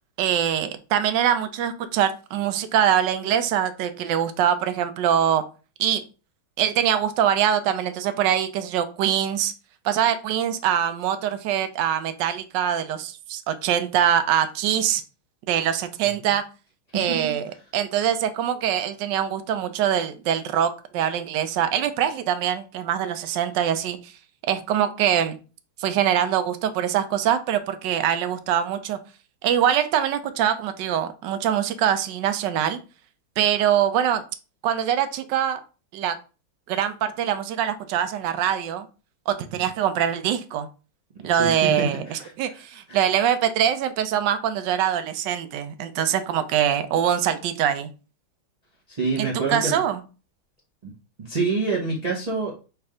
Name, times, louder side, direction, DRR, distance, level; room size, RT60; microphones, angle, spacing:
voice 1, 0.2-5.4 5.8-6.0 6.6-9.5 9.8-15.0 15.5-16.4 16.9-24.1 24.5-25.4 25.8-29.0 29.4-32.8 33.4-34.2 34.6-35.6 35.9-36.2 36.7-38.9 39.3-40.7 41.2-47.9 49.2-50.0, right 9 dB, 75° right, 10 dB, 1.1 m, -23 dB
voice 2, 16.9-17.3 41.3-42.3 42.9-43.0 48.9-49.8 50.8-50.9 51.2-52.5, right 4 dB, 55° right, -4 dB, 0.4 m, -27 dB
3.4 x 3.2 x 4.8 m, 0.34 s
omnidirectional pair, 2.3 m